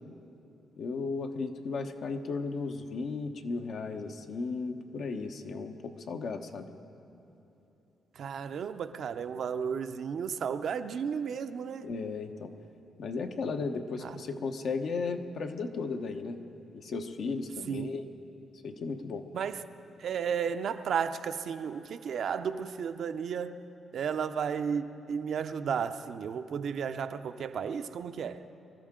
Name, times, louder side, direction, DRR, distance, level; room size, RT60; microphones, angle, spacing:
voice 1, 0.8-6.7 11.8-12.5 13.0-16.4 16.7-18.0 18.6-19.2, left 4 dB, 70° left, 5 dB, 1.1 m, -35 dB
voice 2, 8.1-11.9 14.0-14.2 17.7-17.9 19.3-19.6 20.0-23.6 23.9-28.5, right 7 dB, 65° right, 10 dB, 0.6 m, -33 dB
24.0 x 13.5 x 3.8 m, 3.0 s
supercardioid pair, 65°, 0 cm